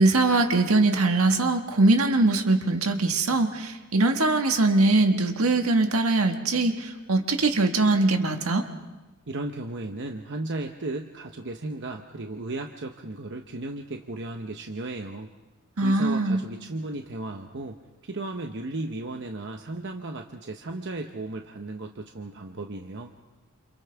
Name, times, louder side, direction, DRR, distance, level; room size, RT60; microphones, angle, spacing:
voice 1, 0.0-8.7 15.8-16.4, right 2 dB, 75° right, 5 dB, 1.7 m, -22 dB
voice 2, 9.3-15.3 15.8-17.8 18.0-23.1, right 2 dB, 55° right, 4 dB, 0.9 m, -35 dB
28.5 x 28.5 x 3.5 m, 1.2 s
head